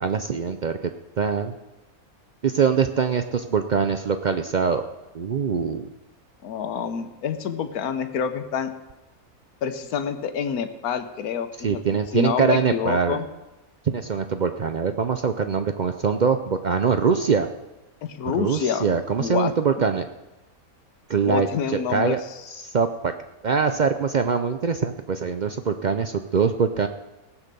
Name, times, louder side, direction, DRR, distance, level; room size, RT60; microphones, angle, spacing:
voice 1, 0.0-0.9 1.2-1.5 2.4-4.8 5.1-5.9 11.6-13.2 13.9-17.5 18.3-20.1 21.1-22.2 22.6-23.1 23.4-26.9, right 6 dB, 75° right, 8 dB, 0.4 m, -23 dB
voice 2, 6.4-8.7 9.6-11.8 12.1-13.3 18.0-18.8 19.2-19.5 21.2-22.7, left 7 dB, 80° left, 8 dB, 1.4 m, -27 dB
17.5 x 7.3 x 6.8 m, 1.0 s
omnidirectional pair, 1.6 m